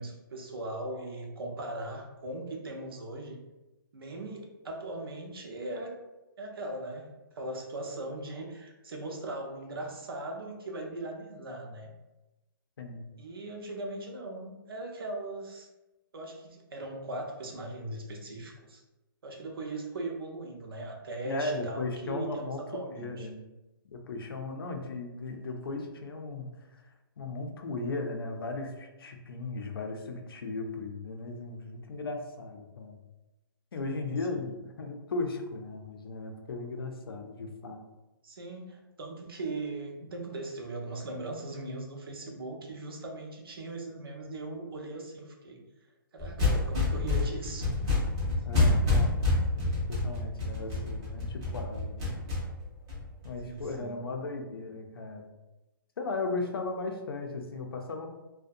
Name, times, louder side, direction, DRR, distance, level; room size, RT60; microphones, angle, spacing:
voice 1, 0.0-3.4 3.9-6.0 6.4-11.9 13.2-15.7 16.1-18.8 19.2-23.3 33.9-34.0 34.3-34.4 38.2-45.6 46.1-47.7 53.4-54.0, right 2 dB, 80° right, 2 dB, 0.6 m, -39 dB
voice 2, 12.8-13.1 21.2-23.4 23.9-26.5 26.7-26.8 27.2-33.0 33.7-37.8 48.4-49.1 49.6-52.1 53.2-55.3 56.0-58.1, left 3 dB, 80° left, 4 dB, 0.5 m, -36 dB
sound 1, 46.2-53.6, left 2 dB, 15° right, 0.5 m, -28 dB
2.6 x 2.1 x 2.4 m, 1.0 s
hypercardioid pair, 180°, 12 cm